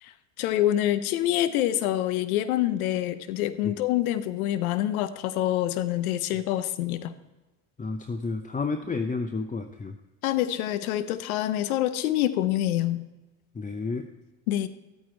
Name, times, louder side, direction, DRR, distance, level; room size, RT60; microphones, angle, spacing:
voice 1, 0.0-7.1 10.2-13.1 14.5-14.7, left 13 dB, 85° left, 13 dB, 0.7 m, -26 dB
voice 2, 7.8-10.0 13.5-14.1, left 4 dB, 20° left, 8 dB, 0.7 m, -31 dB
13.0 x 8.8 x 4.4 m, 1.1 s
hypercardioid pair, 65°, 43 cm